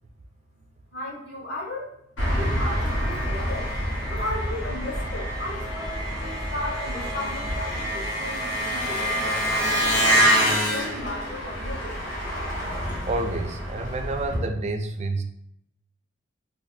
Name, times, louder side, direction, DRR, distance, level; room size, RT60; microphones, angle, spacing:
voice 1, 0.9-2.0 2.3-12.1, left 1 dB, 55° left, -4 dB, 1.1 m, -35 dB
Engine, 2.2-14.4, equal, 85° left, 1.1 m, -26 dB
voice 2, 13.1-15.2, right 2 dB, 35° right, 6 dB, 0.3 m, -29 dB
2.7 x 2.4 x 3.7 m, 0.74 s
head